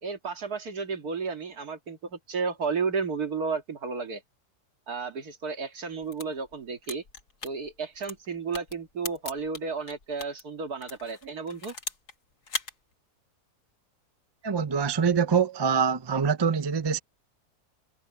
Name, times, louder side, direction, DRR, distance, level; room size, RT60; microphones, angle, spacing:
voice 1, 0.0-4.2 4.9-7.0 7.4-11.7, right 5 dB, 70° right, 2.5 m, -32 dB
sound 1, 5.9-10.4 10.8-12.1 12.4-12.7, left 4 dB, 75° left, 2.8 m, -38 dB
voice 2, 14.4-17.0, right 6 dB, 40° right, 0.3 m, -24 dB
omnidirectional pair, 1.7 m